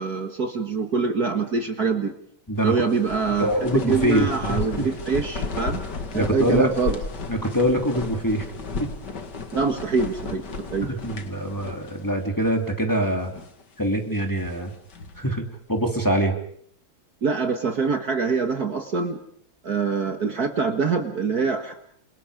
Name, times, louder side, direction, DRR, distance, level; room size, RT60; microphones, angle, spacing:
voice 1, 0.0-2.1 2.6-5.8 6.1-7.0 9.5-10.9 17.2-19.2 19.6-21.7, right 4 dB, 50° right, 5 dB, 2.1 m, -24 dB
sound 1, 2.6-12.1 12.4-12.5 13.1-13.6 14.2-15.3, left 4 dB, 55° left, 2.7 m, -34 dB
voice 2, 3.4-4.9 6.1-6.7 7.3-8.4 8.8-8.9 10.9-13.3 13.8-14.7 15.2-15.4 15.7-16.4, equal, 10° left, 2 dB, 3.1 m, -24 dB
28.0 x 28.0 x 5.1 m, 0.63 s
omnidirectional pair, 2.3 m